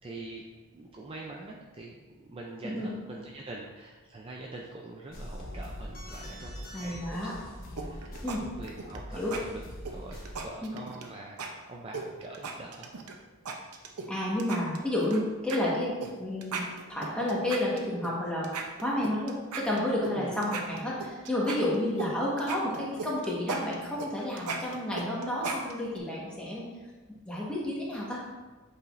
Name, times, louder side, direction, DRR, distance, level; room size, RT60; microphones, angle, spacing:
voice 1, 0.0-0.4 0.7-12.9 20.1-20.4, right 2 dB, 25° right, -1 dB, 0.4 m, -44 dB
sound 1, 5.1-10.5, equal, 40° left, 1.0 m, -42 dB
voice 2, 6.7-7.3 8.2-8.4 9.1-9.3 10.6-10.7 14.1-18.5 18.8-26.7 27.2-28.2, left 1 dB, 5° left, -6 dB, 1.3 m, -31 dB
sound 2, 7.8-8.4 8.7-9.0 9.3-9.4 9.8-11.1 11.4-11.5 11.9-13.1 13.5-14.1 14.4-15.2 15.5-15.6 16.0-16.1 16.4-18.1 18.4-20.1 20.4-22.1 22.4-26.0, right 4 dB, 85° right, 0.7 m, -37 dB
8.2 x 5.0 x 2.6 m, 1.3 s
head